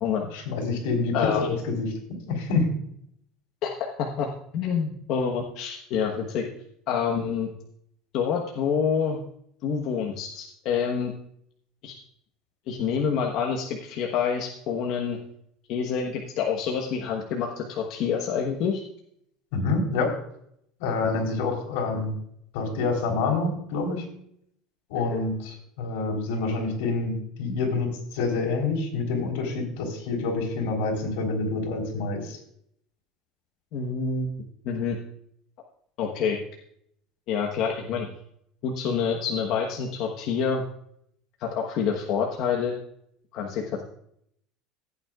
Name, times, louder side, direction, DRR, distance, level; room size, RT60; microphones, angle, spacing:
voice 1, 0.3-1.9 2.3-2.7 19.5-20.1 20.8-22.1 22.5-24.1 24.9-32.4, left 3 dB, 85° left, 1 dB, 3.8 m, -27 dB
voice 2, 1.1-1.5 3.6-3.7 4.0-4.3 4.5-6.5 6.9-7.5 8.1-9.2 9.6-11.1 11.8-11.9 12.7-15.2 15.7-18.8 25.1-25.2 33.7-34.3 34.6-35.0 36.0-36.4 37.3-38.1 38.6-40.6 41.4-42.7 43.3-43.8, left 6 dB, 50° left, 0 dB, 1.2 m, -27 dB
16.0 x 9.3 x 2.4 m, 0.70 s
cardioid pair, 160°, 0 cm